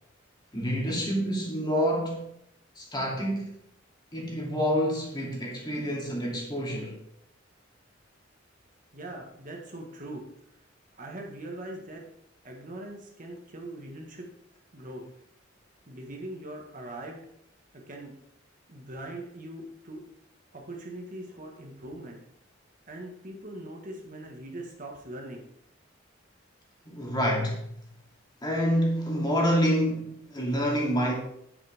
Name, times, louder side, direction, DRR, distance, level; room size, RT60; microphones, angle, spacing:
voice 1, 0.5-2.3 2.8-3.6 4.1-7.0 26.9-27.7 28.4-31.1, equal, 20° left, -2 dB, 2.6 m, -27 dB
voice 2, 8.9-10.2 10.9-12.0 12.4-14.3 14.7-15.0 15.9-17.2 17.9-18.1 18.7-20.0 20.5-22.2 22.9-25.4, right 1 dB, 45° right, 1 dB, 1.6 m, -41 dB
9.2 x 8.9 x 3.6 m, 0.73 s
head